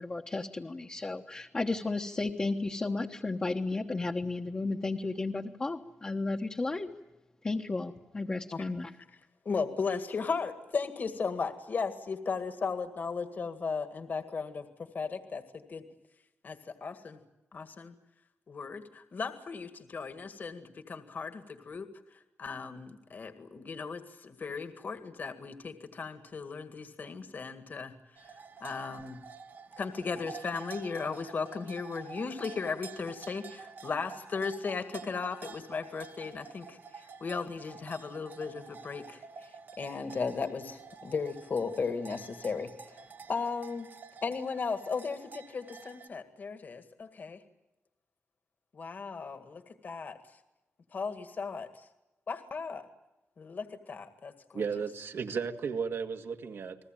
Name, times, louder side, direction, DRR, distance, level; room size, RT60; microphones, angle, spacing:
voice 1, 0.0-6.9 7.4-8.9, left 3 dB, 25° left, 1 dB, 1.2 m, -33 dB
voice 2, 9.5-15.8 16.4-17.2 17.5-17.9 18.5-21.9 22.4-27.9 28.6-29.2 29.8-39.5 39.8-43.9 44.2-47.4 48.7-50.2 50.9-51.9 52.3-52.9 53.4-54.6, left 5 dB, 45° left, 8 dB, 1.9 m, -36 dB
sound 1, 28.2-46.1, right 5 dB, 50° right, 1.2 m, -49 dB
voice 3, 54.5-56.8, right 6 dB, 70° right, 5 dB, 2.0 m, -34 dB
30.0 x 21.0 x 9.1 m, 0.96 s
wide cardioid pair, 170°, 4 cm